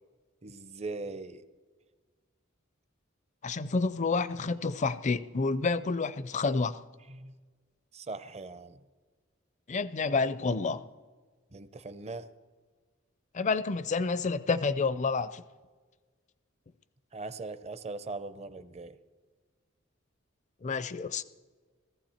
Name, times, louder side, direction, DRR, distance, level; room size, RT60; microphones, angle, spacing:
voice 1, 0.4-1.4 7.1-7.3 7.9-8.8 11.5-12.3 17.1-19.0, right 3 dB, 35° right, 0.6 m, -40 dB
voice 2, 3.4-6.8 9.7-10.8 13.3-15.4 20.6-21.2, left 4 dB, 35° left, 0.5 m, -29 dB
17.5 x 14.5 x 4.4 m
head